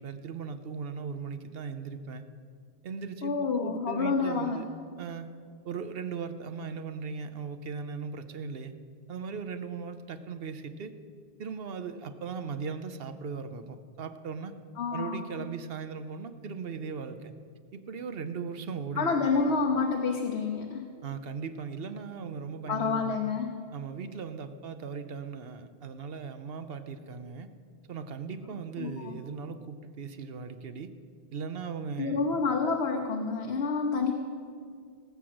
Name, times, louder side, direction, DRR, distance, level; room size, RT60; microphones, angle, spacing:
voice 1, 0.0-2.2 2.8-4.7 5.0-5.3 5.6-8.7 9.1-10.9 11.4-14.5 14.9-17.3 17.7-19.1 21.0-23.2 23.7-27.5 27.9-30.9 31.3-32.2, right 5 dB, 70° right, 10 dB, 1.0 m, -38 dB
voice 2, 3.2-4.6 14.8-15.4 19.0-20.9 22.7-23.6 28.8-29.2 32.0-34.1, left 4 dB, 90° left, 3 dB, 1.2 m, -28 dB
18.5 x 6.3 x 7.8 m, 2.1 s
omnidirectional pair, 1.1 m